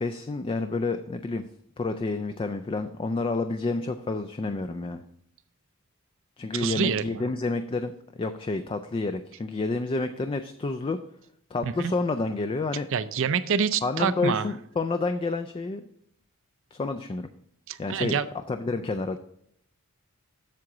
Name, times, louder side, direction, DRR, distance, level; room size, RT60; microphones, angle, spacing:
voice 1, 0.0-1.5 1.8-5.0 6.4-7.9 8.2-11.0 11.5-12.9 13.8-15.9 16.7-17.3 17.8-19.2, left 3 dB, 25° left, 9 dB, 0.3 m, -29 dB
voice 2, 6.5-7.2 11.6-11.9 12.9-14.5 17.7-18.3, right 6 dB, 60° right, 14 dB, 0.5 m, -27 dB
7.6 x 7.2 x 3.8 m, 0.73 s
head